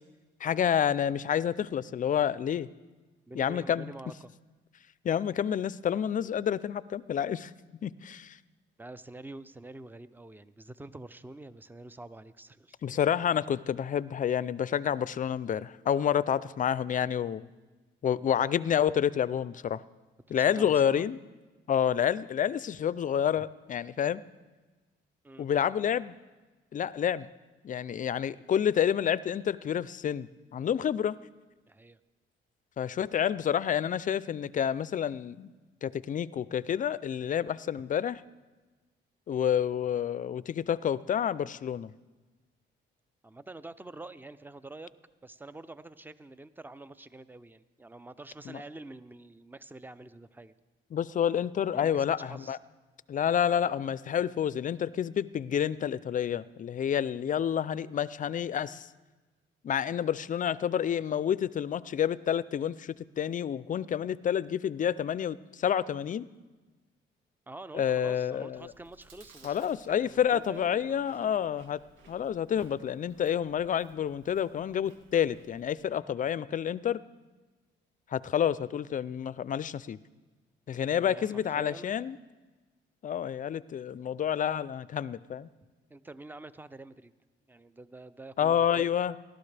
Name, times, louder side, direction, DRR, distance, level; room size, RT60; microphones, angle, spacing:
voice 1, 0.4-2.7 3.3-3.9 5.0-7.5 7.8-8.4 12.8-17.5 18.0-19.8 20.3-21.2 21.7-24.2 25.4-26.2 26.7-27.3 27.6-31.2 32.8-35.5 35.8-38.2 39.3-41.9 48.5-48.6 50.9-52.6 53.1-58.9 59.6-66.3 67.7-68.7 69.4-71.8 72.1-77.0 78.1-80.0 80.7-82.2 83.0-85.5 88.4-89.2, left 9 dB, 40° left, 18 dB, 0.4 m, -29 dB
voice 2, 3.3-4.3 8.8-12.8 20.3-21.1 23.4-23.5 25.2-25.5 31.7-32.0 43.2-44.9 45.2-50.5 51.7-52.6 67.5-71.5 80.8-82.0 85.9-87.1 87.5-88.9, right 2 dB, 10° right, 14 dB, 0.5 m, -47 dB
Chewing mastication, 68.5-75.8, right 3 dB, 90° right, 1.6 m, -60 dB
19.0 x 12.5 x 3.4 m, 1.2 s
cardioid pair, 90°, 20 cm